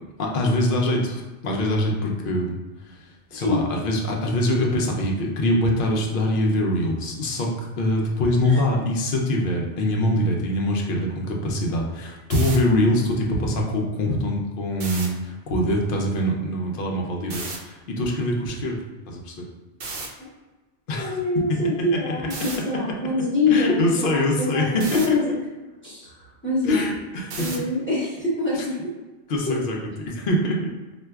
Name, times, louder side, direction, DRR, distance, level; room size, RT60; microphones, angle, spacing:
voice 1, 0.2-2.6 2.8-3.0 3.3-18.8 19.1-19.4 20.9-21.2 22.1-22.2 23.5-25.2 26.1-26.3 26.6-27.6 28.5-28.6 29.3-30.7, left 1 dB, 60° left, 0 dB, 0.7 m, -24 dB
sound 1, 12.2-12.6 14.7-15.1 17.3-17.6 19.8-20.1 22.3-22.6 24.8-25.1 27.3-27.7, right 3 dB, 60° right, 0.7 m, -33 dB
voice 2, 20.9-24.2 24.5-25.4 25.8-26.1 26.4-26.9 27.4-28.7 29.5-29.6, left 3 dB, 10° left, -8 dB, 0.8 m, -25 dB
4.2 x 2.2 x 2.3 m, 1.2 s
omnidirectional pair, 1.2 m